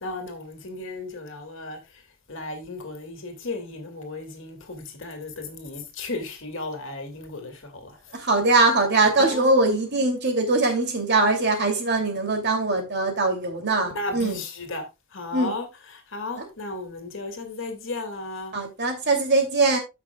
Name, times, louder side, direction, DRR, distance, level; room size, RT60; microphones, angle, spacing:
voice 1, 0.0-1.8 2.3-7.9 9.3-9.5 14.0-14.8 15.1-15.7 16.1-18.5, left 2 dB, 60° left, 2.3 m, -34 dB
voice 2, 8.1-14.4 15.3-15.5 16.4-16.5 18.5-19.8, right 2 dB, 50° right, 2.7 m, -22 dB
14.5 x 6.0 x 2.3 m
head